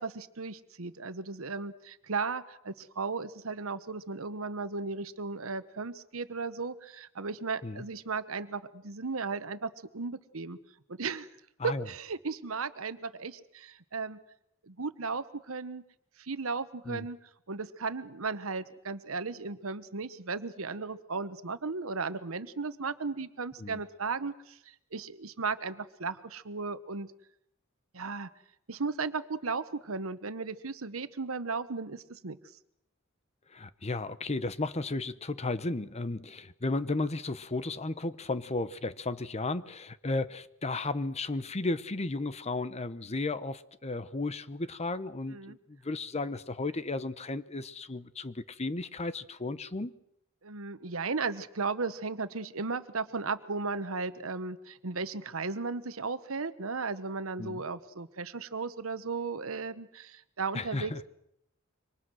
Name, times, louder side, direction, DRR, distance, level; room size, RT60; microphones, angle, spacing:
voice 1, 0.0-10.6 10.9-11.3 11.6-14.2 14.6-15.8 16.2-17.2 17.5-27.1 27.9-28.3 28.7-32.4 45.3-45.6 50.4-61.1, right 4 dB, 80° right, 1.2 m, -35 dB
voice 2, 33.5-49.9 57.4-57.6 60.5-61.0, left 2 dB, 30° left, 0.9 m, -34 dB
27.0 x 24.5 x 6.3 m
head